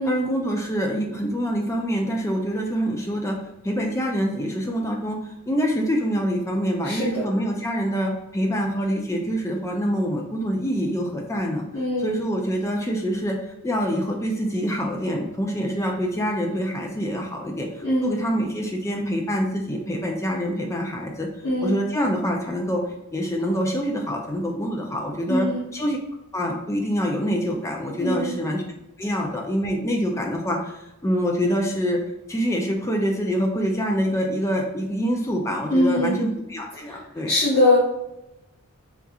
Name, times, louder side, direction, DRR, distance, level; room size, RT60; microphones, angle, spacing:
voice 1, 0.0-3.4 3.6-11.6 12.0-13.4 13.6-21.3 21.6-22.8 23.1-25.5 25.7-26.0 26.3-28.6 29.0-30.7 31.0-32.0 32.3-37.3, equal, 15° left, 1 dB, 0.4 m, -25 dB
voice 2, 6.8-7.3 11.7-12.1 17.8-18.2 21.4-21.8 25.3-25.6 28.0-28.3 35.7-36.2 36.8-37.0 37.3-37.8, left 1 dB, 65° left, -8 dB, 0.9 m, -22 dB
3.5 x 2.8 x 2.4 m, 0.88 s
head